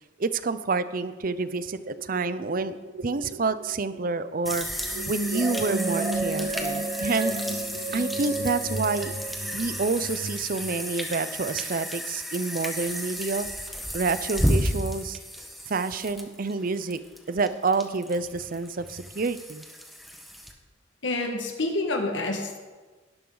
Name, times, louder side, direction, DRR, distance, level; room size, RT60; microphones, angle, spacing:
voice 1, 0.2-2.8 3.0-4.7 5.1-7.4 7.9-9.1 9.5-13.5 13.9-15.2 15.7-17.0 17.3-19.6, right 4 dB, 45° right, 13 dB, 0.6 m, -28 dB
sound 1, 1.4-10.8, right 3 dB, 80° right, 1.0 m, -36 dB
sound 2, 4.4-20.5, equal, ahead, 1.3 m, -33 dB
sound 3, 5.3-9.8, right 2 dB, 15° right, 1.1 m, -33 dB
voice 2, 21.0-22.6, left 2 dB, 70° left, 3 dB, 1.8 m, -28 dB
18.0 x 12.0 x 3.9 m, 1.3 s
head